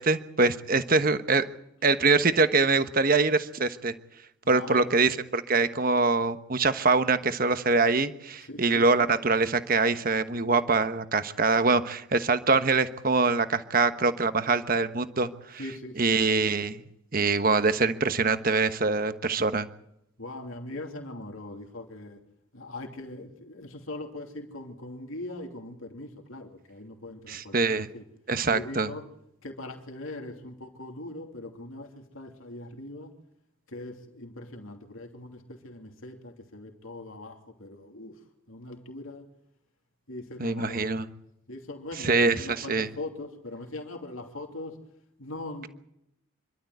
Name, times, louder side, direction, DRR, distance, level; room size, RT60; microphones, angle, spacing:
voice 1, 0.0-1.5 1.8-3.9 4.5-15.6 16.0-16.8 17.1-19.7 27.3-27.9 28.3-28.9 40.4-41.0 42.0-42.9, right 3 dB, 45° right, 1.1 m, -24 dB
voice 2, 4.4-5.0 8.4-9.1 15.6-16.2 20.2-22.3 22.5-28.1 28.5-29.1 29.4-33.2 33.7-38.2 38.5-39.3 40.1-41.0 41.5-44.8 45.2-45.7, left 2 dB, 75° left, 2.9 m, -41 dB
27.0 x 12.5 x 9.3 m
head